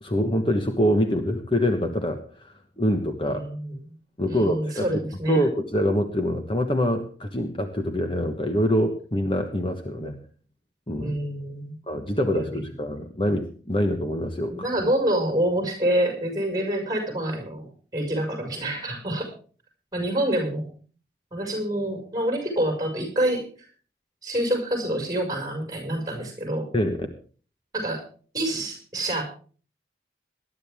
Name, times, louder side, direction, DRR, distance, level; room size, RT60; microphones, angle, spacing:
voice 1, 0.0-3.4 4.2-4.9 5.3-10.1 10.9-11.1 11.9-14.5 26.7-27.0, equal, 30° left, 6 dB, 1.3 m, -25 dB
voice 2, 3.2-3.9 4.3-5.5 9.9-10.2 11.0-11.8 12.3-12.6 14.5-19.3 19.9-20.7 21.3-23.4 24.2-26.7 27.7-28.0 28.3-29.2, right 1 dB, 20° right, 3 dB, 5.6 m, -27 dB
20.0 x 12.0 x 3.6 m, 0.41 s
head